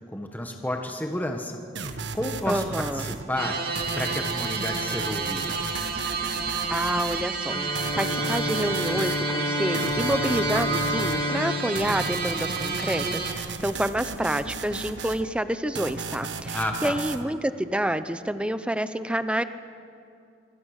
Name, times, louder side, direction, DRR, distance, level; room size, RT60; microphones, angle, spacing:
voice 1, 0.0-1.6 1.9-3.6 3.9-5.7 16.5-17.0, left 1 dB, 10° left, 3 dB, 1.4 m, -31 dB
sound 1, 1.7-3.2 3.7-7.2 7.7-9.2 9.7-11.2 11.7-15.2 15.7-17.2, right 4 dB, 80° right, 1.3 m, -35 dB
voice 2, 2.5-3.1 6.7-7.5 8.0-19.4, right 1 dB, 5° right, 11 dB, 0.8 m, -28 dB
sound 2, 3.4-13.3, right 4 dB, 60° right, 2.7 m, -30 dB
Bowed string instrument, 7.5-13.4, left 2 dB, 25° left, 1.9 m, -30 dB
25.5 x 25.0 x 6.6 m, 2.5 s
head